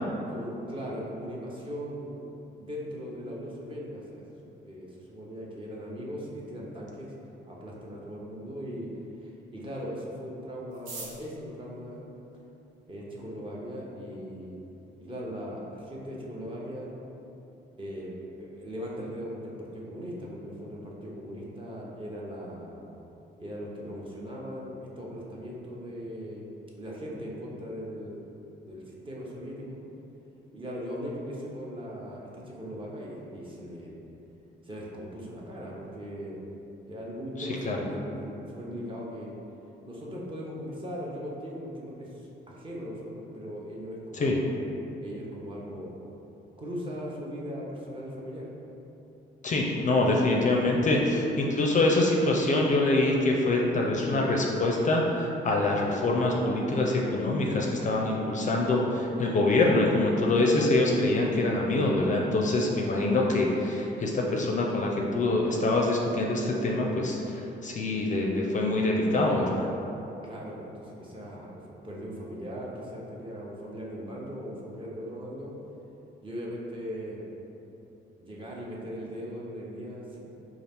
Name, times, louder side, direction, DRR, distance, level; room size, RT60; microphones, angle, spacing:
voice 1, 0.3-2.3 2.6-7.1 7.4-8.9 9.2-12.0 12.9-14.6 15.0-16.9 17.8-22.8 23.4-26.4 26.8-28.2 28.7-29.8 30.5-34.0 34.6-36.4 36.9-39.3 39.8-44.4 45.0-46.0 46.6-48.5 70.2-75.5 76.2-77.3 78.2-80.2, equal, 25° right, -4 dB, 0.8 m, -39 dB
sound 1, 10.7-12.9 13.7-13.8 14.0-14.1 14.4-14.9 15.2-15.3 15.5-15.9 16.2-16.4 16.8-17.1, right 3 dB, 80° right, 0.7 m, -45 dB
voice 2, 37.4-37.8 44.1-44.4 49.4-69.7, left 2 dB, 40° left, -1 dB, 0.4 m, -25 dB
4.0 x 2.4 x 3.4 m, 3.0 s
cardioid pair, 90°, 20 cm